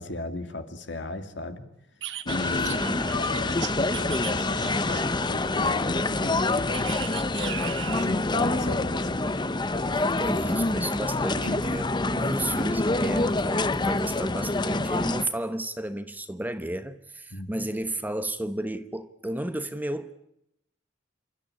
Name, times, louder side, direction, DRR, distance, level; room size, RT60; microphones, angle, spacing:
voice 1, 0.0-1.6 2.2-6.9 7.9-9.2 11.4-11.7 17.3-17.7, left 2 dB, 70° left, 2.4 m, -36 dB
sound 1, 2.0-5.3 6.7-8.2, right 11 dB, 75° right, 1.0 m, -38 dB
sound 2, 2.3-15.3, left 2 dB, 25° left, 0.8 m, -26 dB
voice 2, 2.5-3.1 7.9-8.7 10.0-20.1, right 1 dB, 10° right, 1.0 m, -33 dB
28.0 x 13.5 x 10.0 m
head